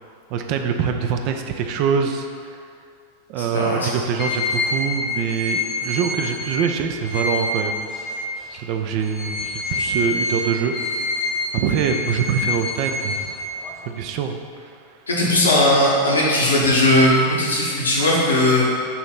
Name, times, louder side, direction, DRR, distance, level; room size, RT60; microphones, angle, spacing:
voice 1, 0.3-2.6 3.3-7.8 8.5-10.7 11.1-11.2 11.5-13.3 13.9-15.0, right 7 dB, 45° right, 5 dB, 0.5 m, -24 dB
voice 2, 3.4-3.9 15.1-18.6, left 1 dB, 75° left, -5 dB, 1.5 m, -18 dB
sound 1, 4.2-8.6 9.0-13.9, left 2 dB, 25° left, 1.0 m, -27 dB
7.0 x 3.2 x 5.5 m, 2.3 s
figure-of-eight pair, 90°, 0 cm